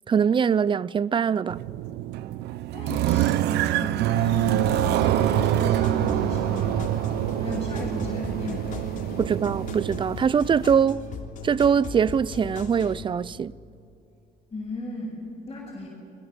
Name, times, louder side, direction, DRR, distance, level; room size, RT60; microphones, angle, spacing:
voice 1, 0.1-1.6 9.2-11.0 11.4-13.5, right 7 dB, 30° right, 0.5 m, -22 dB
sound 1, 1.5-10.0, right 14 dB, 80° right, 0.7 m, -25 dB
voice 2, 2.7-7.0 7.4-8.9 14.5-15.2 15.5-15.9, left 2 dB, 25° left, 7.1 m, -36 dB
sound 2, 4.1-10.8, left 9 dB, 65° left, 1.4 m, -40 dB
sound 3, 5.4-13.0, left 4 dB, 50° left, 3.4 m, -38 dB
29.5 x 21.5 x 8.1 m
cardioid pair, 110°, 17 cm